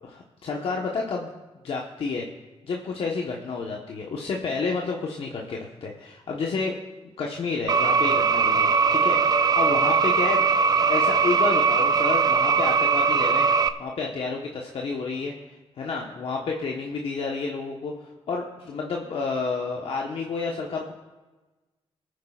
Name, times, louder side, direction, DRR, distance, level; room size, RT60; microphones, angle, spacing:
voice 1, 0.0-1.3 1.6-2.3 2.6-6.8 7.2-10.5 10.9-13.5 13.8-20.9, left 4 dB, 60° left, 0 dB, 1.2 m, -30 dB
sound 1, 7.7-13.7, right 5 dB, 35° right, 0.6 m, -20 dB
27.0 x 9.4 x 2.4 m, 1.2 s
cardioid pair, 85°, 11 cm